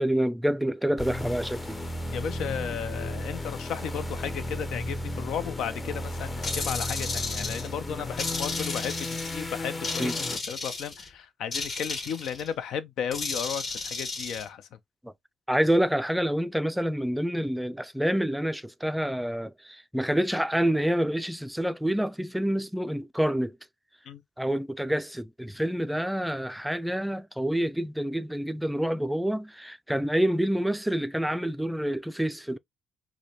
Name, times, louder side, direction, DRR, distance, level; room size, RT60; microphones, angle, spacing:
voice 1, 0.0-1.8 10.0-10.1 15.0-15.1 15.5-23.6 24.4-32.6, equal, 5° right, 0.3 m, -27 dB
sound 1, 1.0-10.4, left 1 dB, 25° left, 0.7 m, -34 dB
voice 2, 2.1-14.7 24.1-24.2, left 8 dB, 80° left, 0.5 m, -34 dB
sound 2, 6.4-7.7 8.2-9.4 9.8-11.1 11.5-12.5 13.1-14.4, left 3 dB, 45° left, 1.4 m, -33 dB
4.9 x 2.2 x 2.8 m
cardioid pair, 90°, 0 cm